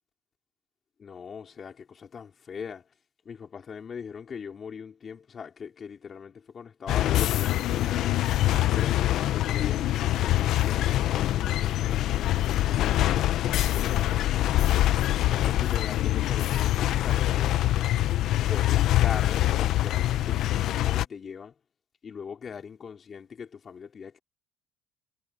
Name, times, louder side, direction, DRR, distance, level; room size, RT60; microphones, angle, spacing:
voice 1, 1.0-2.9 3.2-8.1 8.7-14.8 15.3-17.9 18.4-21.5 22.0-24.2, left 6 dB, 35° left, 4.4 m, -41 dB
sound 1, 6.9-21.1, left 14 dB, 60° left, 0.8 m, -24 dB
cardioid pair, 120°, 0 cm